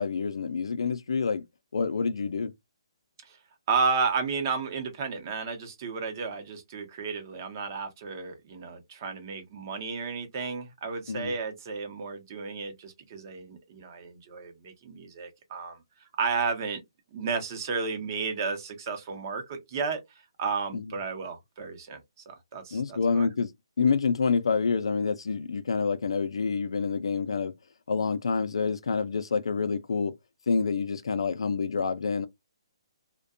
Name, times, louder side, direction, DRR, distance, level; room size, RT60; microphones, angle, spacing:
voice 1, 0.0-1.4 1.7-2.5 11.1-11.3 20.7-20.9 22.7-23.5 23.8-27.5 27.9-30.1 30.5-32.3, left 5 dB, 75° left, 0.4 m, -27 dB
voice 2, 3.7-15.8 16.2-16.8 17.1-20.0 20.4-22.0 22.3-23.3, right 5 dB, 35° right, 0.7 m, -32 dB
2.6 x 2.2 x 2.4 m
hypercardioid pair, 155°, 3 cm